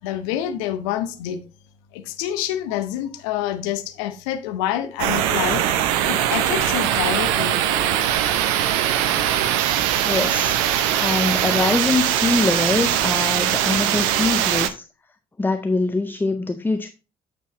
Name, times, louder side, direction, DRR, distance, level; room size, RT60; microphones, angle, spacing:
voice 1, 0.0-1.4 1.9-7.6, left 11 dB, 65° left, 0.9 m, -27 dB
sound 1, 5.0-14.7, right 11 dB, 65° right, 0.6 m, -21 dB
voice 2, 10.0-14.8 15.4-16.9, left 3 dB, 10° left, 0.6 m, -23 dB
8.1 x 4.6 x 4.1 m
figure-of-eight pair, 45°, 18 cm